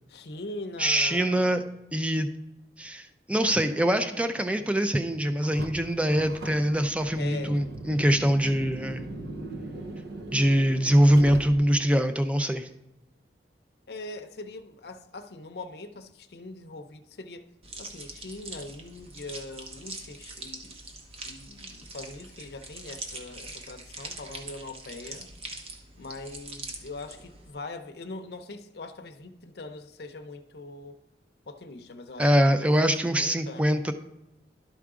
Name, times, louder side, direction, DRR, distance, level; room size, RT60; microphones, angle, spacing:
voice 1, 0.1-1.6 7.2-7.7 13.9-17.5 17.8-20.9 21.2-25.3 25.9-31.0 31.5-32.3 32.6-32.9 33.1-33.7, left 2 dB, 60° left, 0.6 m, -41 dB
voice 2, 0.8-1.6 1.9-2.3 2.8-9.1 10.3-12.7 32.2-33.9, equal, 5° right, 0.4 m, -23 dB
Car, 5.4-11.9, right 2 dB, 65° right, 0.8 m, -39 dB
sound 1, 17.6-27.5, right 2 dB, 35° right, 0.9 m, -43 dB
12.0 x 4.8 x 3.7 m
head